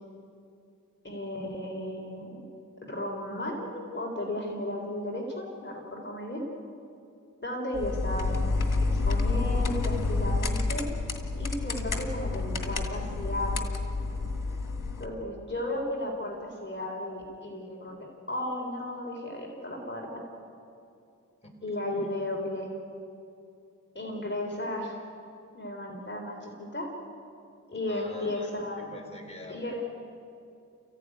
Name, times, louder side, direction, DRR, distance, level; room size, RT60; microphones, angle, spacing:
voice 1, 1.0-2.5 2.9-6.4 7.4-8.5 8.8-10.9 11.4-13.7 15.0-20.2 21.6-22.7 23.9-25.0 25.5-26.9 27.7-28.8 29.5-29.8, left 1 dB, 35° left, 0 dB, 3.7 m, -34 dB
sound 1, 7.7-15.1, left 3 dB, 80° left, 2.2 m, -29 dB
voice 2, 27.9-28.5 28.8-29.8, left 1 dB, 20° left, 1 dB, 4.2 m, -44 dB
30.0 x 15.5 x 9.6 m, 2.6 s
wide cardioid pair, 95°, 32 cm